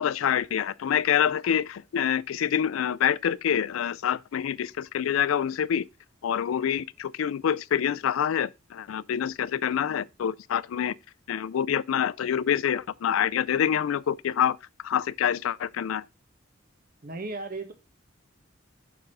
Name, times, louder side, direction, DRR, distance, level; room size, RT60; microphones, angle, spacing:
voice 1, 0.0-5.9 6.2-10.9 11.3-14.6 14.8-16.0, left 9 dB, 90° left, 0.4 m, -26 dB
voice 2, 17.0-17.7, right 3 dB, 45° right, 1.0 m, -35 dB
6.1 x 4.7 x 4.7 m
head